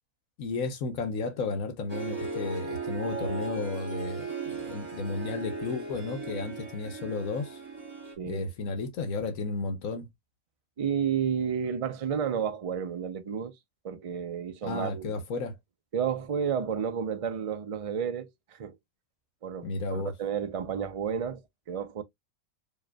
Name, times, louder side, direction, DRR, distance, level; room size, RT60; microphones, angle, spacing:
voice 1, 0.4-7.6 8.2-10.1 14.6-15.6 19.6-20.1, left 3 dB, 70° left, 1.2 m, -33 dB
Harp, 1.9-8.1, right 3 dB, 25° right, 2.4 m, -37 dB
voice 2, 8.2-8.5 10.8-13.5 13.8-15.2 15.9-18.8 19.4-21.4 21.7-22.0, right 7 dB, 55° right, 0.3 m, -31 dB
4.8 x 3.0 x 2.2 m
omnidirectional pair, 1.5 m